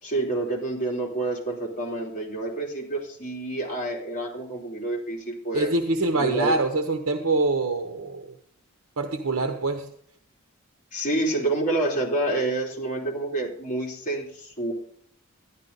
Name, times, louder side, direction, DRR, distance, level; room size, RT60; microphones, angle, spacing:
voice 1, 0.0-5.7 6.2-6.5 10.9-14.7, right 2 dB, 35° left, -2 dB, 3.2 m, -28 dB
voice 2, 5.5-8.3 9.0-9.9, right 2 dB, 80° right, 6 dB, 1.0 m, -25 dB
11.5 x 11.5 x 4.0 m, 0.67 s
head